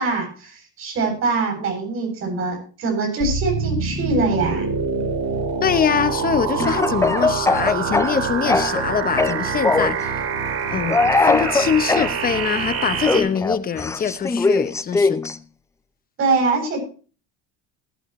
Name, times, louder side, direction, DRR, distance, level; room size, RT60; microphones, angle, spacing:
voice 1, 0.0-4.7 16.2-16.8, right 3 dB, 45° right, 7.9 m, -23 dB
sound 1, 3.2-13.2, right 5 dB, 60° right, 4.4 m, -25 dB
voice 2, 5.6-10.3 10.7-11.0 11.2-15.2, left 7 dB, 30° left, 0.9 m, -23 dB
Speech / Cough, 6.6-8.9 9.2-10.0 10.9-12.1 13.0-15.4, left 3 dB, 10° left, 0.5 m, -20 dB
19.0 x 11.5 x 3.2 m
cardioid pair, 135°, 31 cm